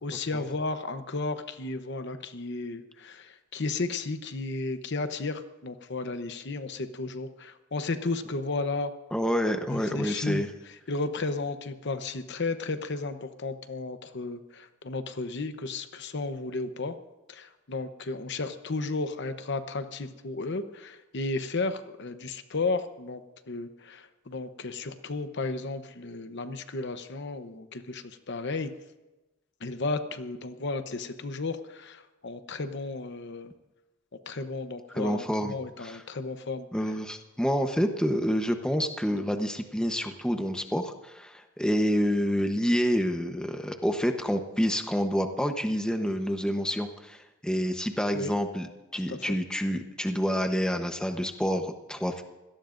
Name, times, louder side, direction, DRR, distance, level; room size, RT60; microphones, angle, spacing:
voice 1, 0.0-8.9 9.7-10.4 10.9-16.9 17.3-23.2 23.5-28.7 29.6-33.5 34.3-36.7 48.1-48.3 49.1-49.2, left 3 dB, 55° left, 9 dB, 0.9 m, -33 dB
voice 2, 9.1-10.5 34.9-36.0 36.7-48.7 48.9-52.2, equal, 5° left, 5 dB, 1.0 m, -28 dB
25.0 x 17.5 x 2.6 m, 1.1 s
head